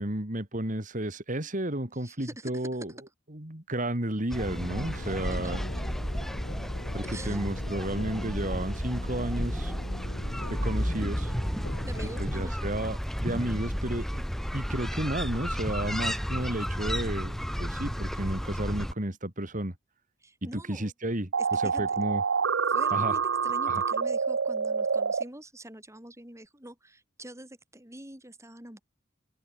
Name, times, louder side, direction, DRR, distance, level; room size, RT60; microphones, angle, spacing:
voice 1, 0.0-2.9 3.3-5.6 6.9-9.7 10.5-11.3 12.2-14.2 14.5-19.7 20.4-22.2 22.9-23.2 23.7-23.8, right 1 dB, 40° right, 3.1 m, -32 dB
voice 2, 2.0-2.7 5.0-5.1 7.0-7.4 11.8-12.6 20.2-20.9 21.4-22.0 22.7-28.8, right 1 dB, 15° right, 5.8 m, -45 dB
sound 1, 4.3-18.9, equal, ahead, 1.9 m, -32 dB
sound 2, 4.5-12.4, left 1 dB, 55° left, 2.4 m, -40 dB
sound 3, 21.3-25.2, right 5 dB, 65° right, 0.8 m, -27 dB
head